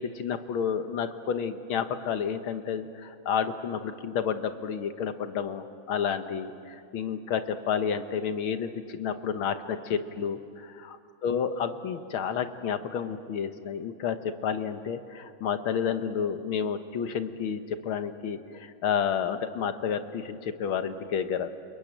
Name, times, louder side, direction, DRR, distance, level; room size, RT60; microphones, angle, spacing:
voice 1, 0.0-21.5, left 7 dB, 70° left, 9 dB, 1.9 m, -30 dB
30.0 x 21.5 x 9.1 m, 2.4 s
omnidirectional pair, 2.4 m